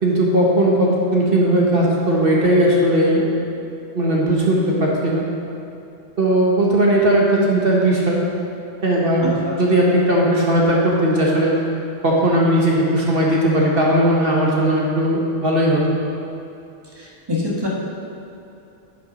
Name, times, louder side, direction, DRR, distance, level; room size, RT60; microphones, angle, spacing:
voice 1, 0.0-3.3 3.9-5.2 6.2-8.2 8.8-11.5 12.0-16.0, right 1 dB, 50° right, -3 dB, 1.3 m, -17 dB
voice 2, 17.0-17.7, left 2 dB, 20° right, -4 dB, 1.5 m, -25 dB
10.5 x 5.9 x 5.1 m, 2.7 s
omnidirectional pair, 1.3 m